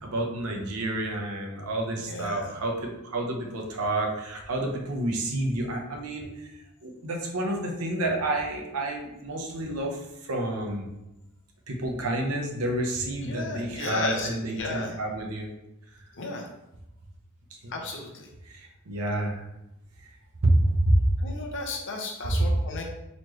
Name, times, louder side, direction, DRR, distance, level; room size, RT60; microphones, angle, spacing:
voice 1, 0.0-6.5 6.8-10.9 11.7-15.5 17.5-17.7 18.5-19.4 20.0-20.1 20.4-21.0 22.3-22.4, right 1 dB, 75° right, 0 dB, 0.8 m, -29 dB
voice 2, 2.0-2.5 13.2-15.0 16.1-16.5 17.7-18.3 19.2-19.3 21.2-22.8, left 2 dB, 55° left, 1 dB, 0.8 m, -34 dB
4.2 x 3.1 x 3.0 m, 0.91 s
head